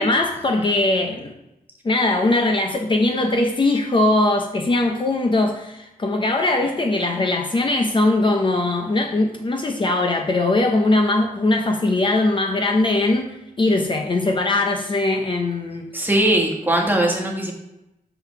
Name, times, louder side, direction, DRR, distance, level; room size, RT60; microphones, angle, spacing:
voice 1, 0.0-1.3 1.8-15.9, left 2 dB, 30° left, 3 dB, 0.7 m, -20 dB
voice 2, 15.9-17.5, right 1 dB, 10° right, 0 dB, 1.6 m, -20 dB
5.9 x 5.1 x 5.9 m, 0.91 s
cardioid pair, 100°, 15 cm